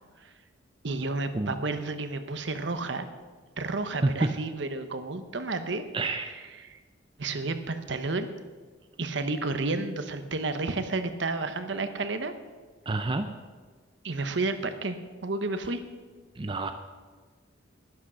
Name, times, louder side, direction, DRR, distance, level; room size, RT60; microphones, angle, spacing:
voice 1, 0.8-3.1 3.6-5.8 6.2-6.3 6.6-6.8 7.2-8.3 9.0-12.3 14.0-15.8, right 3 dB, 65° right, 9 dB, 1.0 m, -31 dB
voice 2, 5.9-6.3 12.9-13.3 16.4-16.7, right 2 dB, 25° right, 7 dB, 0.5 m, -28 dB
11.5 x 10.5 x 6.3 m, 1.4 s
head